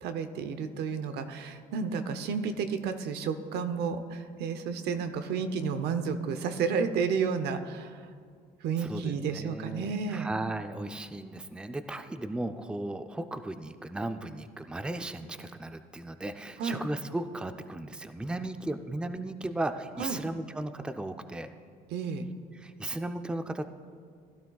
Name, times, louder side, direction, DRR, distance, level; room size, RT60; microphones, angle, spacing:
voice 1, 0.0-8.1 8.6-10.3 16.6-16.8 20.0-20.2 21.9-22.3, right 6 dB, 75° right, 9 dB, 0.8 m, -31 dB
voice 2, 8.8-21.5 22.6-23.7, right 2 dB, 5° right, 8 dB, 0.5 m, -36 dB
16.0 x 12.0 x 2.3 m, 2.2 s
cardioid pair, 110°, 17 cm